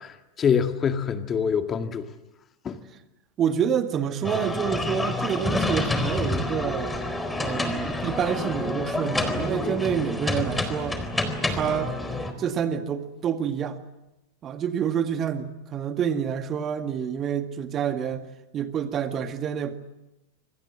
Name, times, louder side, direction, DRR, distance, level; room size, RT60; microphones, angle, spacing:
voice 1, 0.0-2.1 2.6-2.8, left 7 dB, 25° left, 7 dB, 2.1 m, -25 dB
voice 2, 3.4-6.9 7.4-11.0 11.4-11.9 12.4-13.8 14.4-19.7, right 8 dB, 30° right, 8 dB, 2.0 m, -28 dB
sound 1, 4.2-12.3, left 2 dB, 10° left, 4.1 m, -28 dB
26.5 x 25.5 x 7.7 m, 0.95 s
figure-of-eight pair, 90°, 0 cm